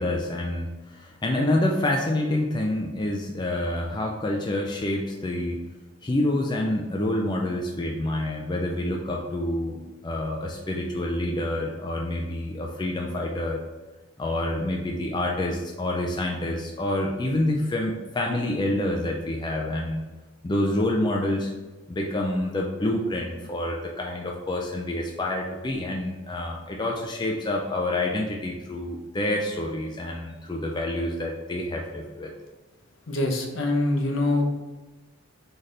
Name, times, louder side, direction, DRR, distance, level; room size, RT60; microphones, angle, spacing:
voice 1, 0.0-5.6 6.0-13.6 14.2-20.0 20.4-21.5 21.9-32.3, left 1 dB, 20° left, -1 dB, 0.4 m, -27 dB
voice 2, 33.1-34.4, left 2 dB, 70° left, 2 dB, 0.8 m, -24 dB
4.0 x 3.3 x 3.8 m, 1.2 s
head